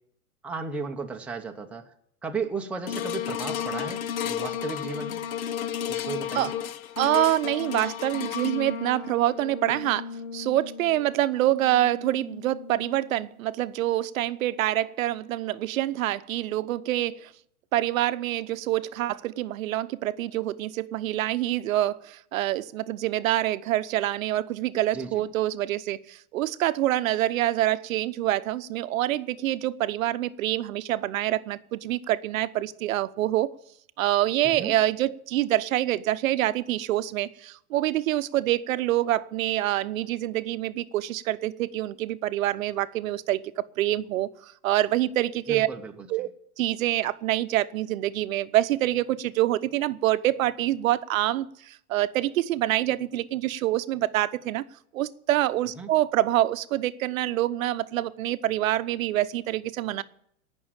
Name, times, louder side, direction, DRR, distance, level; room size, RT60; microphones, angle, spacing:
voice 1, 0.4-1.9 2.2-5.2 5.9-6.5 24.9-25.2 34.4-34.7 45.5-45.9 55.8-55.9, right 4 dB, 5° right, 1 dB, 0.8 m, -34 dB
sound 1, 2.9-13.3 13.8-13.9, left 9 dB, 70° left, 1.0 m, -34 dB
voice 2, 7.0-17.3 17.7-33.5 34.0-43.4 43.8-45.7 46.1-46.3 46.6-54.6 54.9-60.0, right 14 dB, 65° right, 14 dB, 0.8 m, -26 dB
17.5 x 6.3 x 8.7 m, 0.71 s
supercardioid pair, 145°, 44 cm